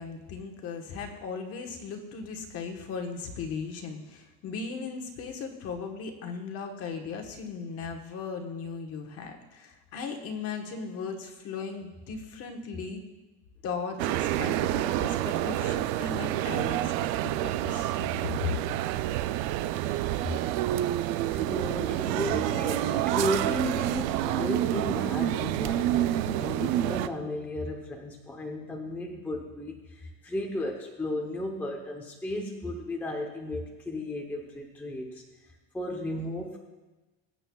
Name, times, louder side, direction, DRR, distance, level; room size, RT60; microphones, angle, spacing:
voice 1, 0.0-13.0 13.6-18.6, left 5 dB, 35° left, 3 dB, 1.3 m, -37 dB
sound 1, 14.0-27.1, right 13 dB, 55° right, 0.5 m, -28 dB
voice 2, 21.3-35.2 35.7-36.6, left 1 dB, 5° left, 0 dB, 0.8 m, -34 dB
22.0 x 8.8 x 2.3 m, 1.1 s
cardioid pair, 175°, 40 cm